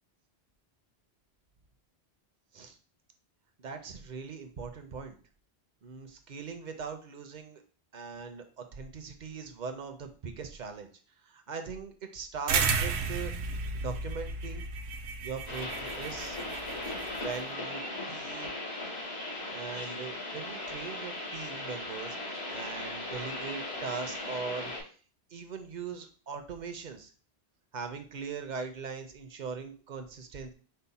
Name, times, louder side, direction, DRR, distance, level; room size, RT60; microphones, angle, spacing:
voice 1, 3.6-5.2 5.8-7.6 7.9-10.9 11.2-14.7 15.2-16.4 17.2-17.8 18.1-18.6 19.5-25.0 25.3-27.1 27.7-30.5, right 5 dB, 55° right, 7 dB, 0.6 m, -40 dB
sound 1, 12.5-17.4, right 5 dB, 80° right, 0.8 m, -33 dB
sound 2, 15.5-24.8, left 2 dB, 75° left, 1.7 m, -38 dB
5.4 x 2.1 x 4.0 m, 0.40 s
omnidirectional pair, 1.1 m